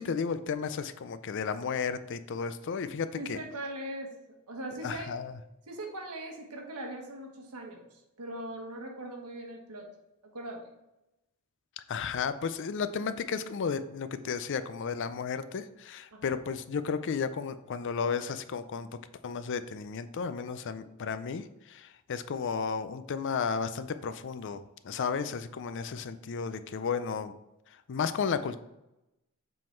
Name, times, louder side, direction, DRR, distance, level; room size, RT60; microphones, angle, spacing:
voice 1, 0.0-3.4 4.8-5.3 11.8-18.9 19.2-27.3 27.9-28.6, left 6 dB, 55° left, 12 dB, 0.4 m, -33 dB
voice 2, 3.1-4.1 4.5-5.2 5.6-9.9 10.2-10.7 16.1-16.4, right 1 dB, 85° right, 2 dB, 1.3 m, -40 dB
7.5 x 3.8 x 4.4 m, 0.92 s
head